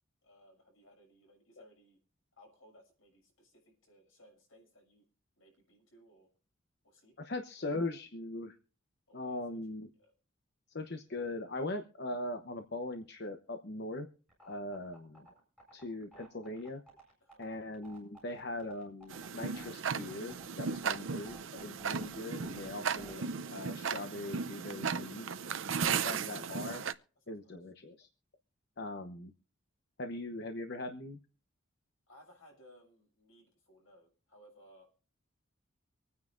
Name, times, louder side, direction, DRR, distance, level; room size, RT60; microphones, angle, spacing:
voice 1, 0.2-2.0 2.4-5.0 5.4-6.3 6.8-7.2 9.1-9.6 10.0-10.1 17.2-17.4 27.3-27.6 32.1-34.9, equal, 75° left, 1 dB, 6.7 m, -61 dB
voice 2, 7.2-8.6 9.1-9.9 10.7-14.1 14.5-15.3 15.7-16.8 17.4-25.3 25.9-26.8 27.3-28.1 28.8-29.3 30.0-31.2, left 2 dB, 55° left, 6 dB, 0.9 m, -40 dB
sound 1, 14.3-23.1, right 1 dB, 5° left, 7.8 m, -56 dB
Tick-tock, 19.1-26.9, right 6 dB, 70° right, 0.6 m, -36 dB
25.0 x 9.6 x 2.6 m, 0.39 s
head